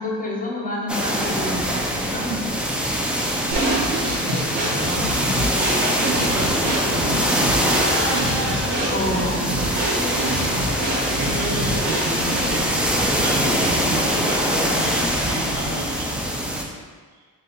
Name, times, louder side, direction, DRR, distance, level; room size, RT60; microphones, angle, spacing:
voice 1, 0.0-2.4 2.7-2.9 8.9-9.5, left 1 dB, 20° left, -2 dB, 0.8 m, -28 dB
sound 1, 0.9-16.6, equal, 5° right, 0.3 m, -23 dB
sound 2, 3.5-12.7, right 1 dB, 85° right, 1.3 m, -27 dB
voice 2, 4.4-5.1 5.8-7.9 10.9-16.3, right 1 dB, 65° right, -2 dB, 1.0 m, -31 dB
Laughter, 7.4-14.8, right 1 dB, 30° right, 0.9 m, -33 dB
4.2 x 2.6 x 3.9 m, 1.5 s
cardioid pair, 105°, 38 cm